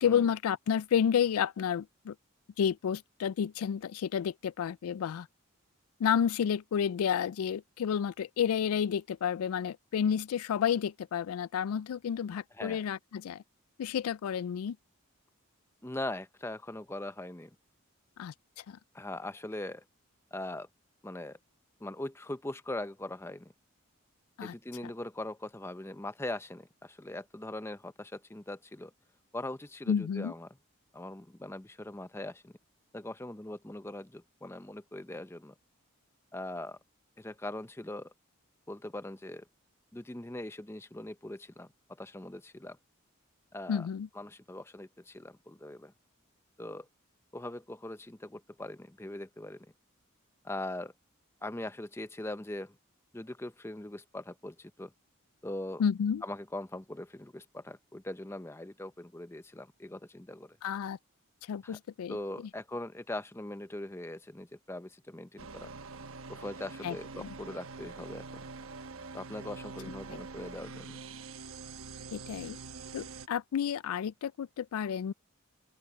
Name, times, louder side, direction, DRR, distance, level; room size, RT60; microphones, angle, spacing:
voice 1, 0.0-2.1 2.6-5.3 6.0-13.4 13.8-14.8 18.2-18.3 18.7-18.8 24.4-24.5 29.9-30.3 43.7-44.1 55.8-56.2 60.6-61.0 61.5-62.2 66.8-67.3 72.1-72.6 72.9-75.1, left 8 dB, 90° left, 0.3 m, -30 dB
voice 2, 15.8-17.5 18.9-19.8 20.3-20.7 21.0-21.4 21.8-23.5 24.4-28.9 29.3-30.5 30.9-32.5 32.9-35.5 36.3-36.8 37.2-38.1 38.7-39.4 39.9-41.7 42.0-42.8 43.5-43.9 44.1-45.9 46.6-46.9 47.3-49.7 50.4-50.9 51.4-52.8 53.1-54.9 55.4-55.8 56.2-60.6 61.6-61.8 62.1-65.7 66.3-68.4 69.1-71.0, left 1 dB, 10° left, 0.6 m, -41 dB
sound 1, 65.4-73.3, right 4 dB, 80° right, 1.1 m, -45 dB
open air
head